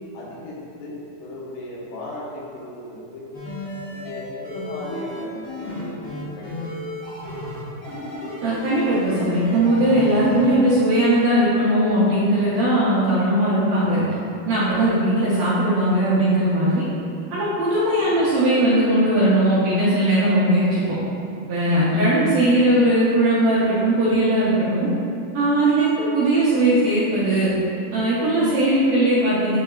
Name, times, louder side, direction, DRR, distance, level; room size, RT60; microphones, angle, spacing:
voice 1, 0.1-3.3 3.9-6.8 18.0-18.2, left 1 dB, 85° left, -5 dB, 3.5 m, -36 dB
sound 1, 3.3-10.6, left 1 dB, 60° left, 1.2 m, -33 dB
voice 2, 8.4-14.0 14.5-16.9 17.3-20.8 21.5-24.9 25.3-27.5 27.9-29.6, right 1 dB, 70° right, -10 dB, 2.5 m, -19 dB
12.0 x 5.0 x 2.5 m, 2.5 s
omnidirectional pair, 4.9 m